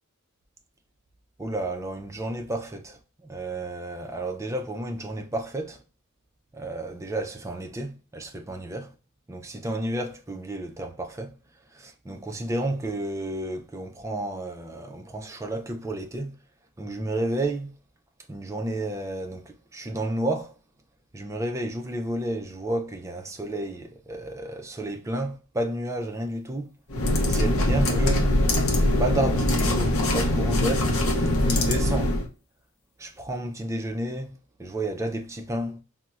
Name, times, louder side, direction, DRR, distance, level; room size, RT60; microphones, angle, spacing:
voice 1, 1.4-5.8 6.5-8.9 9.3-11.3 11.7-16.4 16.8-17.7 18.3-20.6 21.1-26.7 27.3-28.3 29.0-30.9 31.4-32.1 33.0-34.3 34.6-35.8, right 1 dB, 15° right, 0.3 m, -31 dB
sound 1, 26.9-32.3, left 1 dB, 70° left, 0.6 m, -22 dB
4.1 x 2.0 x 2.3 m
head